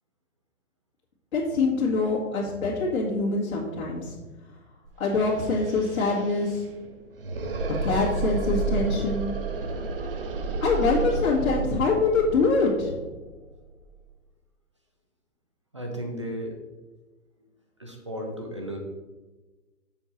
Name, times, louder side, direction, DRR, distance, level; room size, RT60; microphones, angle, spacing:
voice 1, 1.3-4.2 5.0-6.6 7.8-9.3 10.6-12.9, left 3 dB, 60° left, -6 dB, 2.1 m, -24 dB
sound 1, 4.8-4.9 5.2-14.0, right 3 dB, 40° right, 0.8 m, -31 dB
voice 2, 15.7-16.6 17.8-18.8, equal, 20° right, 1 dB, 0.5 m, -34 dB
7.1 x 4.6 x 5.8 m, 1.2 s
hypercardioid pair, 165°, 44 cm